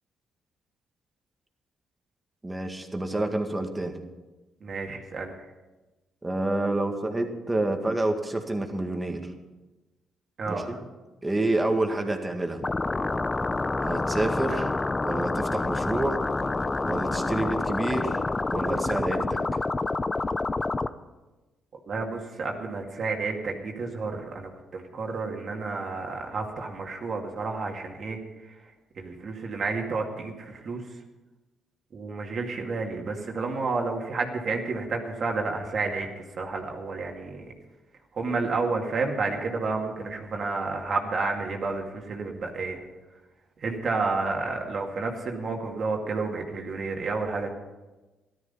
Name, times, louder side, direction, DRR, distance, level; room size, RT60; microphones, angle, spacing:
voice 1, 2.4-3.9 6.2-9.3 10.5-10.8 11.2-12.6 13.8-14.6 15.0-16.2 16.9-18.2 18.5-19.4, right 2 dB, 15° right, 4 dB, 1.9 m, -28 dB
voice 2, 4.6-5.3 10.4-10.8 14.5-14.7 21.9-28.2 28.5-28.6 29.0-30.8 31.9-37.4 38.1-42.8 43.6-47.5, right 3 dB, 50° right, 1 dB, 2.2 m, -30 dB
sound 1, 12.6-20.9, left 3 dB, 25° left, 0.6 m, -28 dB
14.0 x 12.5 x 5.6 m, 1.1 s
cardioid pair, 90°, 0 cm